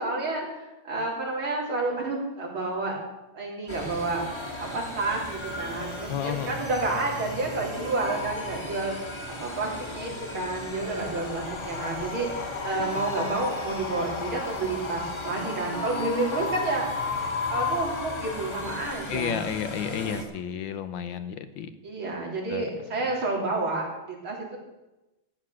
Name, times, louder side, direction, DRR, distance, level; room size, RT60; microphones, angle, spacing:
voice 1, 0.0-3.0 3.3-17.0 17.5-19.4 19.7-20.2 21.8-24.6, right 2 dB, 90° right, -2 dB, 4.2 m, -30 dB
sound 1, 3.7-20.2, left 1 dB, 15° left, 1.6 m, -38 dB
voice 2, 6.1-6.6 19.1-21.7 22.5-22.7, left 8 dB, 70° left, 12 dB, 1.5 m, -31 dB
Wind, 10.8-18.9, left 6 dB, 50° left, 1.0 m, -34 dB
14.5 x 9.7 x 6.4 m, 1.0 s
omnidirectional pair, 2.2 m